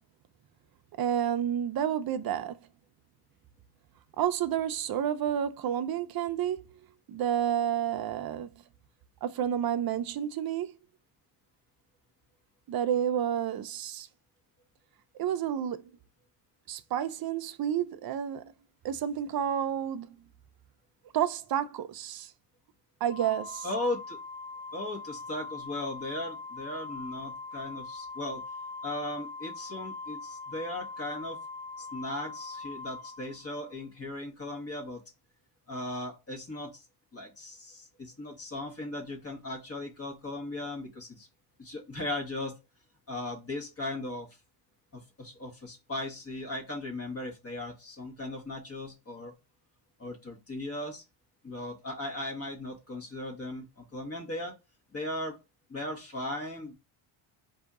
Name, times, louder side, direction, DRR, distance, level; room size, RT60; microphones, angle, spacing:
voice 1, 1.0-2.6 4.2-6.8 7.1-8.5 9.2-10.7 12.7-14.1 15.1-15.8 16.7-18.5 18.8-20.2 21.1-22.3 23.0-23.7, right 9 dB, 45° right, 0.6 m, -30 dB
Organ, 23.1-33.8, left 3 dB, 55° left, 0.9 m, -42 dB
voice 2, 23.6-24.2 24.7-28.4 28.8-31.4 31.8-35.0 35.7-36.9 37.1-41.3 41.6-42.6 43.1-44.3 44.9-49.3 50.0-51.0 51.4-54.5 54.9-55.4 55.7-56.7, left 1 dB, 30° left, 1.2 m, -37 dB
4.2 x 2.7 x 3.6 m
cardioid pair, 105°, 50 cm